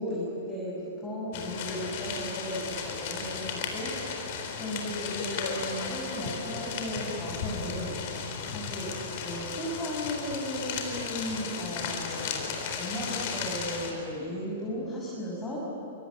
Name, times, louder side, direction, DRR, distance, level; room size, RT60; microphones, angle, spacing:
voice 1, 0.0-4.0 4.6-8.0 8.5-15.6, equal, 15° left, -6 dB, 6.6 m, -35 dB
sound 1, 1.3-13.9, left 6 dB, 45° left, 4.4 m, -35 dB
26.5 x 25.0 x 8.5 m, 3.0 s
figure-of-eight pair, 110°, 0 cm